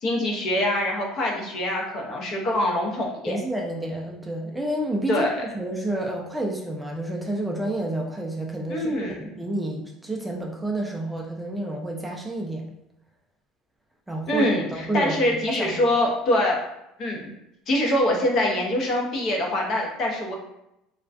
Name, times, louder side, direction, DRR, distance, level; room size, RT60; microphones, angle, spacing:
voice 1, 0.0-3.4 5.1-5.4 8.7-9.3 14.3-16.6 17.0-17.3 17.7-20.3, left 1 dB, 50° left, 0 dB, 0.6 m, -24 dB
voice 2, 3.3-12.6 14.1-15.8, right 1 dB, 10° right, 0 dB, 0.3 m, -30 dB
2.3 x 2.1 x 2.4 m, 0.84 s
supercardioid pair, 115°, 0 cm